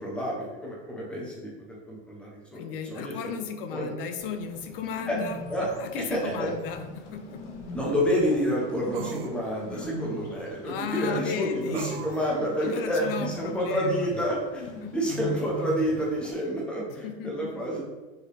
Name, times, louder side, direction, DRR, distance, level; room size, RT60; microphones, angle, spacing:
voice 1, 0.0-1.5 1.9-3.3 3.7-3.9 5.1-5.2 5.5-5.7 6.0-6.6 7.7-17.8, equal, 5° left, -4 dB, 0.6 m, -29 dB
voice 2, 2.5-7.4 10.6-12.1 12.6-14.1 14.8-14.9 16.9-17.5, left 6 dB, 55° left, 7 dB, 0.6 m, -35 dB
Bird, 4.2-16.3, left 1 dB, 85° left, 1.0 m, -40 dB
sound 1, 6.6-6.7 8.9-9.4 11.7-12.3, right 8 dB, 55° right, 0.4 m, -38 dB
4.5 x 3.3 x 3.2 m, 1.2 s
supercardioid pair, 160°, 35 cm